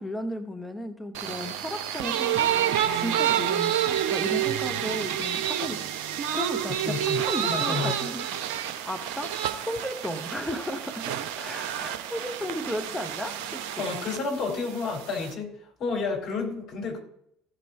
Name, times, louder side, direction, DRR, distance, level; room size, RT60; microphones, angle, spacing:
voice 1, 0.0-2.6 2.9-5.9 6.3-9.4 9.6-13.9, equal, 10° left, 7 dB, 0.9 m, -35 dB
sound 1, 1.1-15.3, right 10 dB, 65° right, 0.7 m, -29 dB
voice 2, 6.8-8.0 13.8-17.0, left 4 dB, 50° left, 0 dB, 4.1 m, -31 dB
15.5 x 5.4 x 4.5 m, 0.71 s
figure-of-eight pair, 60°, 0 cm